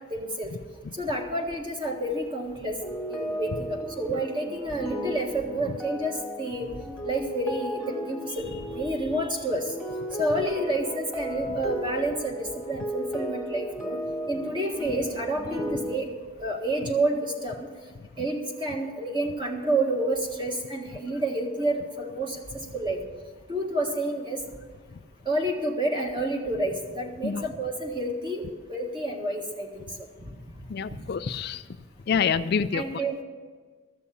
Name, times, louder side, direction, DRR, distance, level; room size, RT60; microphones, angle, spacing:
voice 1, 0.1-0.5 1.0-2.8 3.1-6.7 7.0-9.7 10.2-14.0 14.3-16.1 16.4-17.7 18.2-23.0 23.5-24.4 25.3-28.4 28.7-29.9 30.2-30.3 32.7-33.2, right 1 dB, 25° right, 1 dB, 1.7 m, -29 dB
sound 1, 2.8-16.0, equal, 5° right, 2.0 m, -35 dB
voice 2, 30.7-31.6 32.1-33.0, left 6 dB, 50° left, 12 dB, 0.3 m, -27 dB
14.0 x 6.9 x 8.4 m, 1.5 s
head